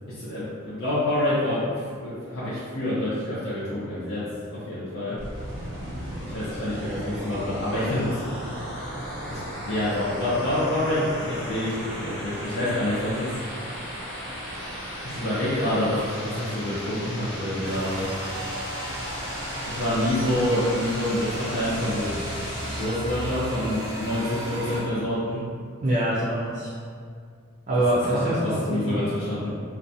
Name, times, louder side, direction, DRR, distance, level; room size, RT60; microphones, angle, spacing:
voice 1, 0.2-1.7 2.0-4.2 4.5-5.2 6.3-8.2 9.3-13.4 15.0-18.1 19.7-22.4 22.8-25.4 28.4-29.5, left 1 dB, 60° left, -10 dB, 0.5 m, -27 dB
sound 1, 5.2-22.8, equal, 5° left, 0.9 m, -36 dB
sound 2, 17.6-24.8, equal, 75° right, 0.7 m, -34 dB
voice 2, 25.8-26.8 27.7-29.2, right 1 dB, 40° right, -9 dB, 0.4 m, -25 dB
2.5 x 2.2 x 2.6 m, 2.2 s
head